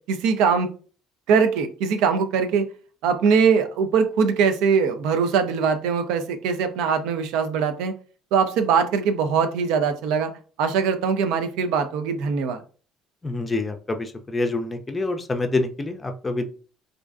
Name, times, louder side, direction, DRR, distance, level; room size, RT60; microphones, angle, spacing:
voice 1, 0.1-0.7 1.3-2.7 3.0-7.9 8.3-10.3 10.6-12.6, right 6 dB, 65° right, 7 dB, 0.3 m, -21 dB
voice 2, 13.2-16.5, left 2 dB, 25° left, 6 dB, 0.4 m, -26 dB
2.4 x 2.2 x 2.4 m, 0.39 s
hypercardioid pair, 55°, 0 cm